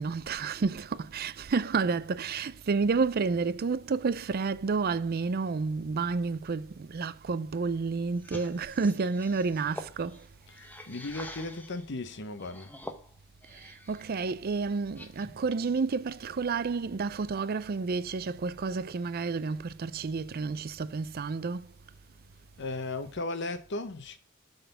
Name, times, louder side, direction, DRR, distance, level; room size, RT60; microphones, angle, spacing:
voice 1, 0.0-10.3 13.5-21.7, right 4 dB, 45° right, 0.4 m, -30 dB
sound 1, 8.2-11.9 12.4-14.1 14.5-15.5, left 1 dB, 10° left, 0.8 m, -46 dB
voice 2, 10.5-12.7 22.6-24.2, left 2 dB, 55° left, 0.9 m, -36 dB
8.0 x 4.1 x 6.7 m
head